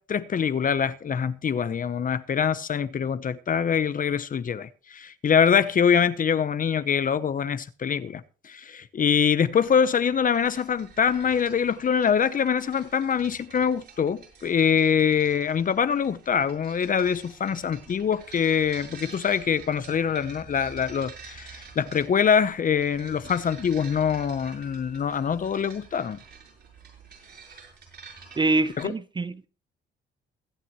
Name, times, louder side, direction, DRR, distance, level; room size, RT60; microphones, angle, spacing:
voice 1, 0.0-26.2 28.8-28.9, left 7 dB, 45° left, 0.9 m, -24 dB
sound 1, 9.6-28.8, right 5 dB, 55° right, 6.8 m, -48 dB
voice 2, 28.4-29.5, right 2 dB, 25° right, 0.6 m, -25 dB
22.5 x 8.4 x 3.1 m
cardioid pair, 90°, 20 cm